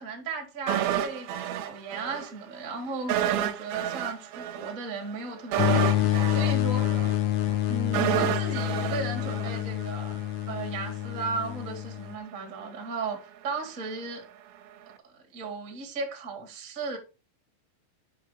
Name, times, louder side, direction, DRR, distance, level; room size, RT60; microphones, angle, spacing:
voice 1, 0.0-6.9 7.7-10.2 10.5-14.3 15.0-17.0, right 4 dB, 50° right, 0.9 m, -36 dB
sound 1, 0.7-2.3 2.6-2.7 3.1-10.2 10.5-10.6, right 11 dB, 80° right, 2.3 m, -30 dB
sound 2, 5.6-12.2, left 13 dB, 90° left, 3.0 m, -27 dB
8.6 x 5.6 x 4.7 m
omnidirectional pair, 5.3 m